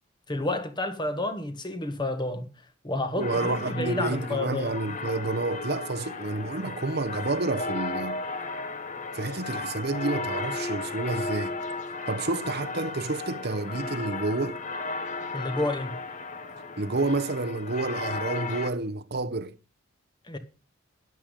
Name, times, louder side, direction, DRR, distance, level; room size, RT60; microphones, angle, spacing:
voice 1, 0.3-2.5 2.8-4.7 15.3-16.0 20.3-20.4, left 2 dB, 20° left, 1.6 m, -30 dB
sound 1, 3.2-18.7, left 3 dB, 40° left, 1.5 m, -35 dB
voice 2, 3.2-8.2 9.1-11.6 12.1-14.6 16.8-19.5, right 2 dB, 55° right, 0.9 m, -29 dB
13.0 x 11.0 x 5.2 m
head